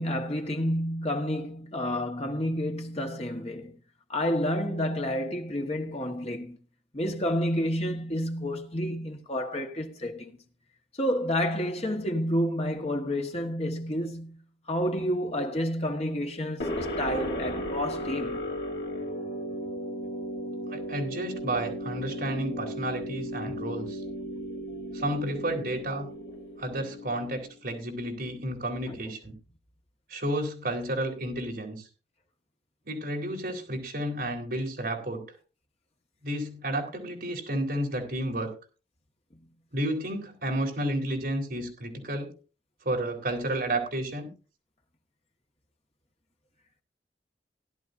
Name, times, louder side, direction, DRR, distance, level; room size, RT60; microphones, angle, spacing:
voice 1, 0.0-3.8 4.1-6.6 6.9-10.4 11.0-14.4 14.7-18.5 28.9-29.0, equal, 35° left, 1.5 m, -30 dB
sound 1, 16.6-27.5, equal, 65° left, 2.6 m, -35 dB
voice 2, 20.7-24.0 24.9-26.1 26.6-29.3 30.1-31.9 32.9-35.2 36.2-38.6 39.7-42.3 42.8-44.3, right 1 dB, 55° right, 3.8 m, -31 dB
17.0 x 11.5 x 2.7 m
head